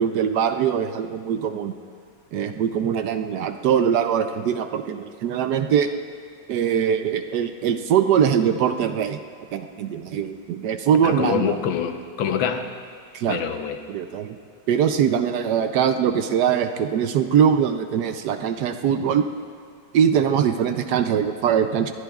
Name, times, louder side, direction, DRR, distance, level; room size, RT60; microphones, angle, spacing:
voice 1, 0.0-1.7 2.3-5.9 6.5-9.2 9.5-11.6 13.1-13.4 13.9-14.4 14.7-19.3 19.9-21.9, right 8 dB, 70° right, 8 dB, 1.0 m, -22 dB
voice 2, 11.0-12.7 13.3-13.8, left 8 dB, 70° left, 6 dB, 1.6 m, -25 dB
22.0 x 19.0 x 2.4 m, 2.1 s
omnidirectional pair, 2.2 m